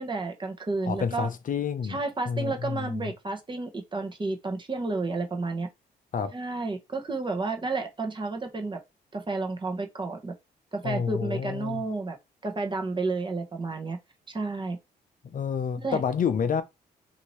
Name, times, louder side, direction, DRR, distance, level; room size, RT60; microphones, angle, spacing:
voice 1, 0.0-1.3 1.9-5.7 6.3-8.8 9.1-10.3 10.7-12.2 12.4-14.0 14.3-14.8 15.8-16.0, right 3 dB, 25° right, 1.0 m, -31 dB
voice 2, 0.9-2.0 2.3-3.1 6.1-6.4 10.8-11.8 15.3-16.6, left 6 dB, 45° left, 0.6 m, -29 dB
2.7 x 2.7 x 3.0 m
supercardioid pair, 60°, 19 cm